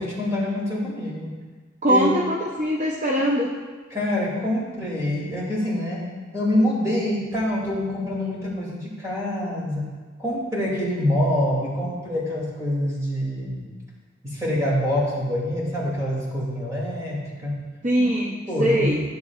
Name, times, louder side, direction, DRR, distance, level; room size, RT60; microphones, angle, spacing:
voice 1, 0.0-1.3 1.9-2.1 3.9-6.1 6.3-9.8 10.2-13.7 14.2-17.6 18.0-18.1 18.5-19.0, left 1 dB, 15° right, -6 dB, 2.5 m, -25 dB
voice 2, 1.8-3.5 17.8-19.0, equal, 35° right, -2 dB, 0.6 m, -22 dB
14.0 x 6.9 x 2.4 m, 1.4 s
head